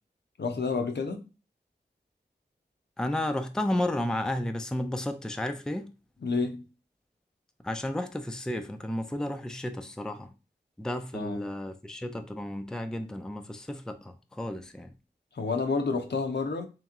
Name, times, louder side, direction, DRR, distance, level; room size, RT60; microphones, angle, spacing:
voice 1, 0.4-1.2 6.2-6.6 11.1-11.4 15.3-16.7, left 4 dB, 70° left, 0.7 m, -29 dB
voice 2, 3.0-5.9 7.6-10.3 10.8-14.9, left 1 dB, 5° left, 0.4 m, -32 dB
3.4 x 3.0 x 3.6 m
wide cardioid pair, 55°, 18 cm